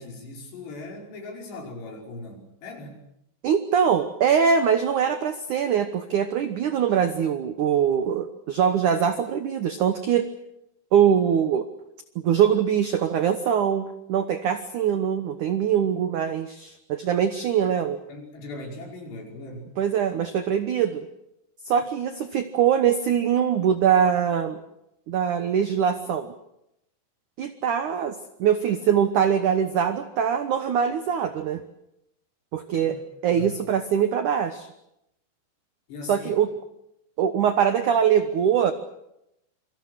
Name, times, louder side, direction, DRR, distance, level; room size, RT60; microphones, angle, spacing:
voice 1, 0.0-3.1 18.1-19.7 32.8-33.0 33.3-33.6 35.9-36.3, left 2 dB, 65° left, 1 dB, 7.2 m, -39 dB
voice 2, 3.4-10.3 10.9-11.7 12.2-18.0 19.8-21.1 21.6-24.6 25.1-26.3 27.4-31.6 32.5-33.0 33.2-34.7 36.1-36.5 37.2-38.7, right 8 dB, 85° right, 10 dB, 1.7 m, -23 dB
27.0 x 25.5 x 6.4 m, 0.82 s
omnidirectional pair, 5.4 m